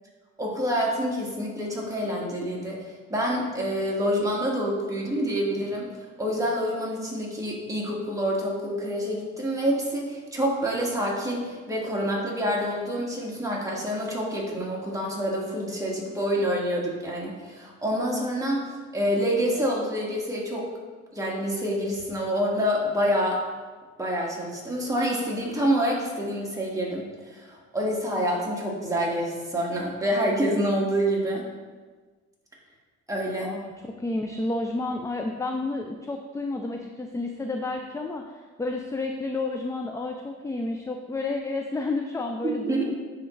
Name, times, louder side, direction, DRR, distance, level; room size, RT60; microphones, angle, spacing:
voice 1, 0.4-20.7 21.1-23.4 24.0-31.4 33.1-33.6 42.4-42.9, equal, 10° right, -3 dB, 1.7 m, -27 dB
voice 2, 33.4-42.9, left 2 dB, 10° left, 3 dB, 0.4 m, -31 dB
9.6 x 3.7 x 3.1 m, 1.4 s
cardioid pair, 90°, 30 cm